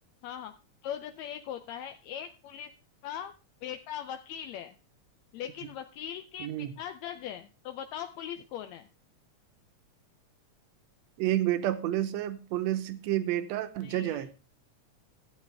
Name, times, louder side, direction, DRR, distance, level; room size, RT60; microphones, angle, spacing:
voice 1, 0.2-0.5 0.8-2.7 3.0-3.3 3.6-4.8 5.3-8.9 13.8-14.3, left 9 dB, 75° left, 8 dB, 1.9 m, -40 dB
voice 2, 6.4-6.7 11.2-14.3, right 13 dB, 70° right, 10 dB, 2.1 m, -30 dB
15.0 x 8.4 x 3.4 m, 0.30 s
omnidirectional pair, 3.3 m